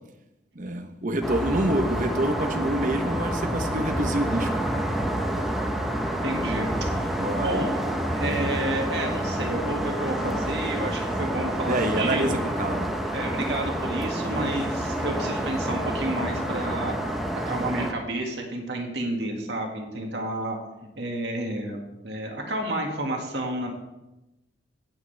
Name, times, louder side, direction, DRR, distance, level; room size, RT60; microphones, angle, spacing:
voice 1, 0.5-4.6 5.3-5.4 6.7-6.9 7.2-7.6 11.7-12.9, right 1 dB, 45° right, 6 dB, 1.0 m, -27 dB
sound 1, 1.2-17.9, right 1 dB, ahead, 1.0 m, -28 dB
voice 2, 6.2-6.7 7.0-7.1 7.4-7.7 8.1-12.4 13.1-20.6 21.0-23.7, right 1 dB, 70° right, 1 dB, 2.0 m, -30 dB
17.0 x 7.7 x 3.4 m, 0.96 s
head